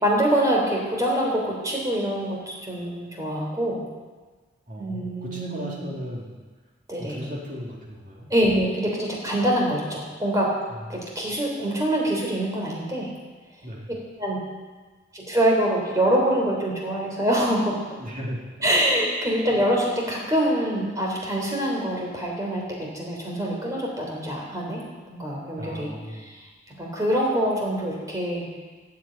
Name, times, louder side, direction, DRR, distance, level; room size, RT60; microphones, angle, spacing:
voice 1, 0.0-3.8 4.8-5.8 6.9-7.2 8.3-10.5 10.9-13.1 14.2-14.4 15.1-17.8 18.6-24.8 25.1-28.6, right 1 dB, 15° right, -2 dB, 3.4 m, -25 dB
voice 2, 4.7-6.3 7.0-8.3 10.9-11.0 13.6-13.9 18.0-18.7 25.6-26.3, equal, 40° right, -3 dB, 3.2 m, -36 dB
13.5 x 7.6 x 8.9 m, 1.4 s
head